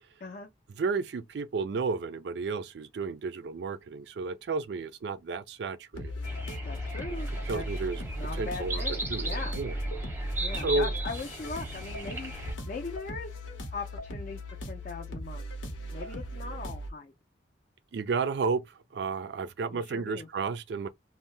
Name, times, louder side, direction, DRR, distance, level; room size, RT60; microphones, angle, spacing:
voice 1, 0.8-6.1 7.5-8.0 8.4-8.8 9.1-9.8 10.6-10.9 17.9-18.6 18.9-20.9, right 4 dB, 60° right, 0.4 m, -32 dB
sound 1, 5.9-16.9, equal, 85° left, 0.9 m, -36 dB
sound 2, 6.2-12.5, right 2 dB, 10° right, 0.6 m, -38 dB
voice 2, 6.6-7.6 8.2-9.6 10.4-12.3 12.7-13.4 13.7-15.4 15.9-17.1 19.7-20.3, left 4 dB, 45° left, 0.4 m, -40 dB
2.7 x 2.0 x 3.1 m
head